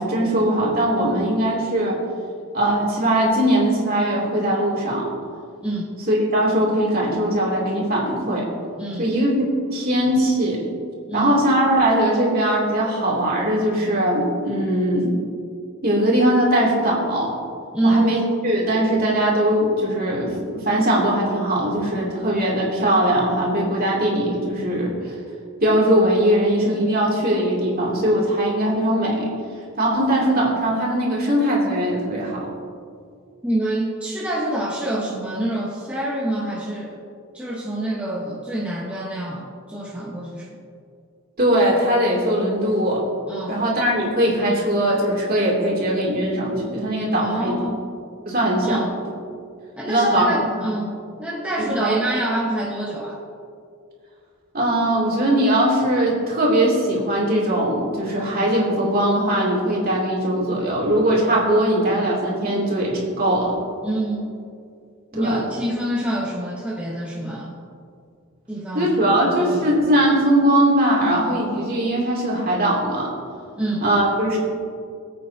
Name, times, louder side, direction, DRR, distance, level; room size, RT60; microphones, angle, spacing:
voice 1, 0.0-2.0 2.5-5.1 6.1-8.4 9.0-9.3 9.7-10.6 11.1-15.1 15.8-17.3 17.8-25.1 25.6-29.3 29.8-32.5 41.4-43.0 43.5-47.6 48.3-48.8 49.9-50.5 51.6-52.0 54.5-63.5 65.1-65.5 68.7-73.1 73.8-74.4, right 1 dB, 45° right, -4 dB, 3.0 m, -20 dB
voice 2, 5.6-5.9 8.8-9.1 11.1-11.4 17.7-18.2 33.4-37.0 37.3-40.6 43.3-43.6 47.1-47.8 48.6-48.9 49.8-53.2 63.8-64.4 65.1-67.6 68.5-69.7 73.6-73.9, right 1 dB, 5° right, -5 dB, 1.3 m, -26 dB
22.0 x 8.6 x 2.9 m, 2.3 s
head